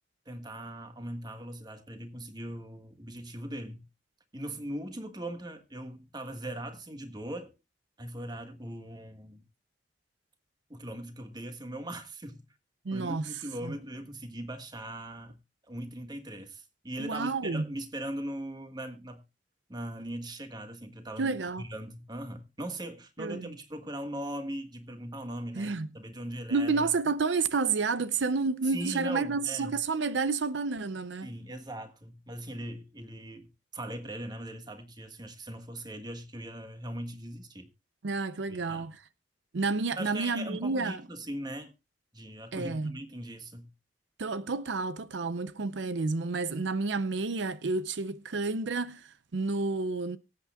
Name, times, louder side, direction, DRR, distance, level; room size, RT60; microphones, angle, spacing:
voice 1, 0.2-3.9 4.3-7.5 8.0-9.4 10.7-12.4 12.9-15.4 15.7-19.2 19.7-26.9 28.7-29.8 31.2-37.7 38.5-38.9 40.0-41.7 42.1-43.7, right 1 dB, 25° right, 1.5 m, -40 dB
voice 2, 12.8-13.3 13.6-13.7 17.0-17.6 21.2-21.7 23.2-23.5 25.6-25.9 26.5-31.3 38.0-39.0 39.5-41.0 42.5-43.0 44.2-50.2, right 4 dB, 80° right, 0.6 m, -30 dB
24.0 x 8.4 x 2.3 m
head